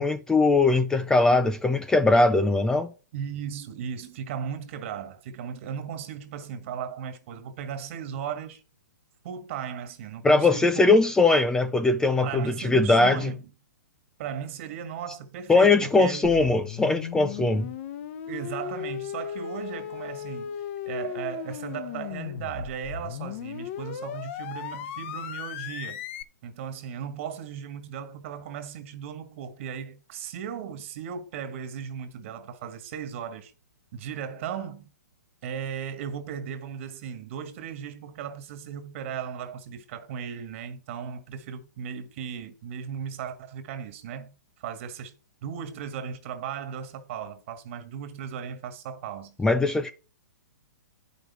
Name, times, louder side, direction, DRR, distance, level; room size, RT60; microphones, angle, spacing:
voice 1, 0.0-2.9 10.2-13.3 15.5-17.7 49.4-49.9, left 3 dB, 5° left, 0.5 m, -21 dB
voice 2, 3.1-8.6 9.2-10.9 12.2-13.5 14.2-16.4 17.4-17.5 18.3-20.6 20.9-26.0 26.4-33.5 33.9-34.9 35.4-44.3 44.6-45.1 45.4-49.4, right 8 dB, 45° right, 1.8 m, -36 dB
sound 1, 16.2-26.2, left 9 dB, 45° left, 0.8 m, -36 dB
10.0 x 5.3 x 5.8 m
figure-of-eight pair, 120°, 9 cm